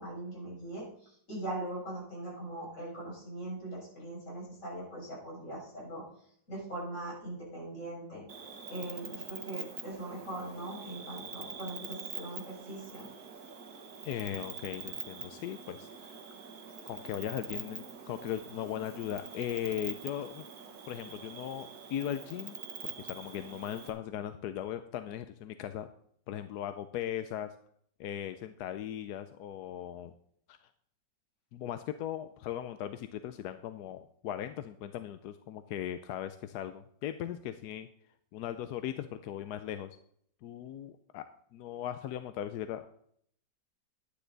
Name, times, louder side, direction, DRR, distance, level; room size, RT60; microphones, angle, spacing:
voice 1, 0.0-6.0 6.5-8.2 8.7-13.1, right 1 dB, 40° left, -5 dB, 6.6 m, -41 dB
Cricket, 8.3-23.9, right 6 dB, 55° right, 1.8 m, -45 dB
voice 2, 14.0-16.2 16.9-20.5 20.9-22.6 22.8-25.9 26.3-27.5 28.0-30.1 30.5-30.6 31.5-37.9 38.3-40.0 40.4-41.2 41.5-42.8, left 11 dB, 70° left, 10 dB, 1.0 m, -38 dB
11.5 x 10.0 x 4.0 m, 0.66 s
omnidirectional pair, 2.1 m